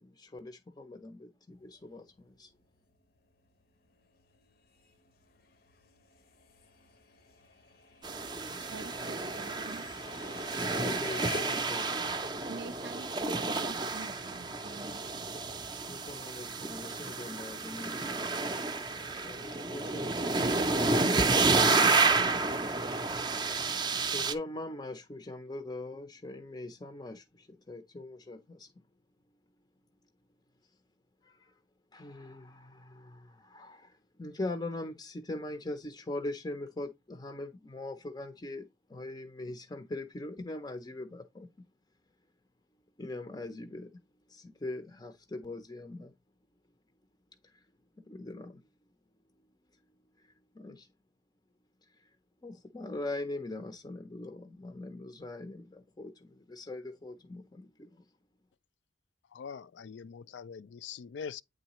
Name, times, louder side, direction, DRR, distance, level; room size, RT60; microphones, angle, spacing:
voice 1, 0.0-2.5 10.7-12.1 15.7-18.4 19.1-22.9 23.4-28.8 31.2-31.6 31.9-41.5 43.0-43.9 44.3-46.1 47.4-47.7 48.1-48.7 50.2-50.9 51.9-52.2 52.4-58.1, left 2 dB, 20° left, 0.5 m, -42 dB
sound 1, 1.5-11.8, left 3 dB, 55° left, 0.8 m, -51 dB
sound 2, 8.0-24.3, right 3 dB, 25° right, 0.5 m, -30 dB
voice 2, 8.6-9.9 12.4-15.4 15.6-15.7, right 4 dB, 70° right, 0.6 m, -46 dB
voice 3, 59.3-61.4, left 6 dB, 75° left, 0.4 m, -43 dB
8.8 x 3.9 x 2.9 m
head